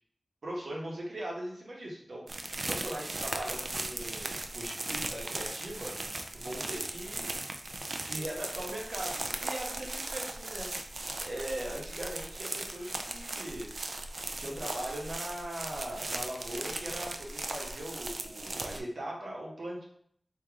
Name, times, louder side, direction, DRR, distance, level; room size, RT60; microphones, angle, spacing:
voice 1, 0.4-5.9 6.3-7.3 7.8-10.7 11.2-13.7 14.4-19.8, right 1 dB, 85° right, -3 dB, 1.0 m, -40 dB
sound 1, 2.3-18.8, right 2 dB, 55° right, 0.4 m, -38 dB
3.5 x 2.8 x 3.5 m, 0.67 s
wide cardioid pair, 70°, 0 cm